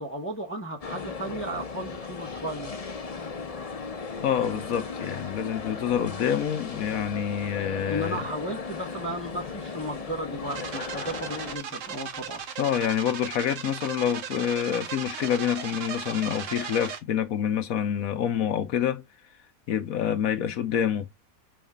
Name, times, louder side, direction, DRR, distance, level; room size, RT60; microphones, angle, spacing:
voice 1, 0.0-2.7 7.9-12.4, right 1 dB, 10° left, 0.8 m, -35 dB
sound 1, 0.8-11.6, left 4 dB, 40° left, 0.5 m, -36 dB
voice 2, 4.2-8.2 12.6-19.0 19.7-21.1, left 9 dB, 65° left, 1.0 m, -27 dB
sound 2, 10.5-17.0, right 7 dB, 55° right, 1.1 m, -37 dB
5.4 x 4.8 x 3.6 m
omnidirectional pair, 1.8 m